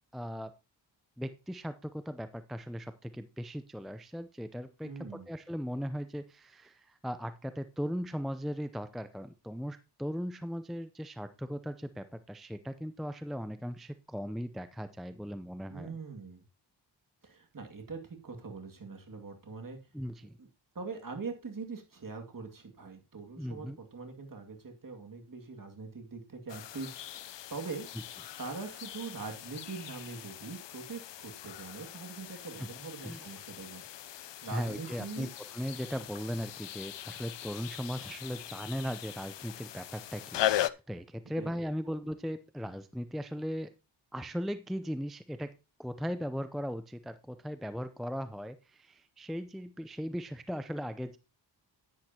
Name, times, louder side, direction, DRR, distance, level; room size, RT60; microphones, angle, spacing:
voice 1, 0.1-0.5 1.2-16.0 19.9-20.4 23.4-23.8 32.6-32.7 33.0-33.2 34.5-43.7 44.1-45.5 45.8-51.2, equal, ahead, 11 dB, 0.5 m, -38 dB
voice 2, 4.8-5.3 15.7-16.4 17.2-19.8 20.4-20.5 20.7-27.9 28.4-35.3 41.4-41.5, right 4 dB, 45° right, 3 dB, 2.3 m, -43 dB
sound 1, 26.5-40.7, left 12 dB, 65° left, 0.6 m, -39 dB
10.5 x 9.8 x 2.9 m, 0.28 s
cardioid pair, 75°, 46 cm